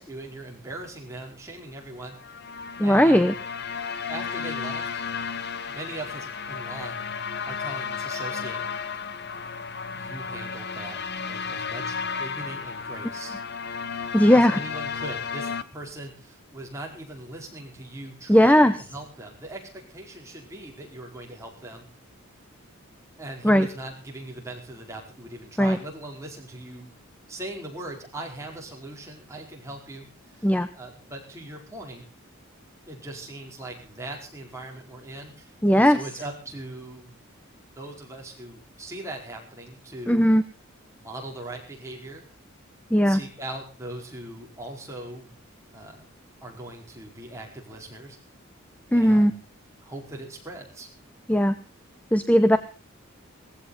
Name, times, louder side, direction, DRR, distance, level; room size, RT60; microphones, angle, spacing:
voice 1, 0.0-2.2 2.8-3.3 4.1-4.9 5.7-7.1 7.4-8.6 9.9-13.3 14.1-21.9 23.2-26.9 27.3-32.0 32.9-37.2 37.8-40.2 40.9-42.3 43.0-45.4 45.7-46.1 46.4-48.2 48.9-49.4 49.8-50.9, right 1 dB, 15° right, 0 dB, 4.8 m, -40 dB
sound 1, 2.1-15.6, left 6 dB, 50° left, 1.1 m, -33 dB
voice 2, 2.8-3.3 14.1-14.6 18.3-18.8 23.4-23.7 25.6-25.8 30.4-30.7 35.6-36.0 40.1-40.4 42.9-43.2 48.9-49.3 51.3-51.5 52.1-52.6, equal, 5° left, 12 dB, 0.8 m, -17 dB
18.0 x 16.0 x 4.1 m, 0.36 s
head